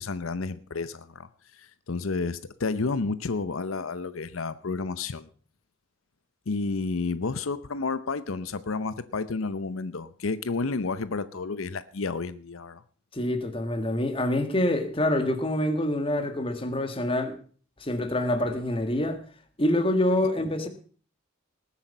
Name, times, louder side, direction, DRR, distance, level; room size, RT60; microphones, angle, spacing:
voice 1, 0.0-5.3 6.5-12.8, left 4 dB, 85° left, 0.7 m, -31 dB
voice 2, 13.1-17.4 17.8-19.2 19.6-20.7, left 1 dB, 25° left, 1.8 m, -26 dB
19.5 x 8.3 x 5.4 m
head